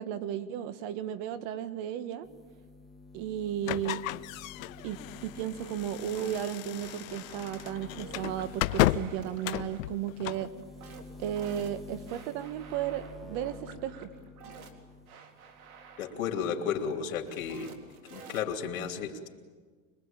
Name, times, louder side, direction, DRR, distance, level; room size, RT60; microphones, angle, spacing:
voice 1, 0.0-2.3 3.1-4.0 4.8-10.5 11.2-14.1, right 10 dB, 45° right, 13 dB, 1.6 m, -34 dB
sound 1, 2.2-15.2 15.5-16.5, left 3 dB, ahead, 1.8 m, -50 dB
sound 2, 3.6-10.5, left 16 dB, 70° left, 0.7 m, -33 dB
sound 3, 5.6-18.7, right 6 dB, 90° right, 3.6 m, -51 dB
voice 2, 16.0-17.7 18.1-19.3, left 7 dB, 90° left, 4 dB, 3.0 m, -33 dB
25.5 x 22.0 x 8.9 m, 1.5 s
supercardioid pair, 150°, 41 cm